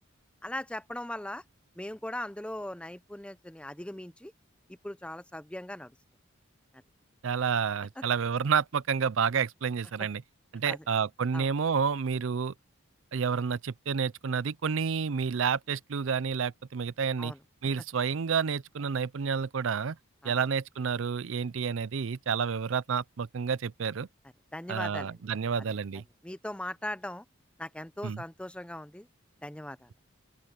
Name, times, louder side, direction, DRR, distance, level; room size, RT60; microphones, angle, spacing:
voice 1, 0.4-1.4 1.8-4.3 4.8-5.9 10.7-10.8 11.3-11.5 17.2-17.4 20.2-20.3 24.5-25.2 26.2-27.2 27.6-29.1 29.4-29.9, left 1 dB, 5° left, 0.6 m, -39 dB
voice 2, 7.2-10.2 10.5-12.5 13.1-17.3 17.6-20.0 20.2-24.1 24.7-26.0 28.0-28.2, right 6 dB, 65° right, 0.5 m, -29 dB
open air
head